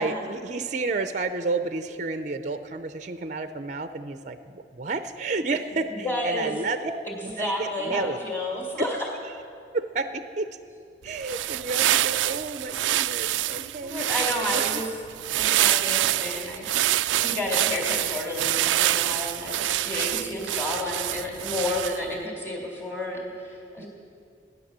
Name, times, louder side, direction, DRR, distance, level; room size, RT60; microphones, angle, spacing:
voice 1, 0.0-7.0 7.2-8.2 8.8-9.3 9.7-10.5 11.0-14.1 14.4-14.8 22.1-22.3 23.8-23.9, right 3 dB, 40° right, 10 dB, 0.6 m, -31 dB
voice 2, 5.9-6.5 7.1-9.0 13.5-14.9 15.3-23.9, left 1 dB, 15° left, -3 dB, 2.6 m, -31 dB
sound 1, 11.1-22.1, right 14 dB, 85° right, 0.3 m, -26 dB
15.5 x 10.5 x 7.4 m, 2.3 s
head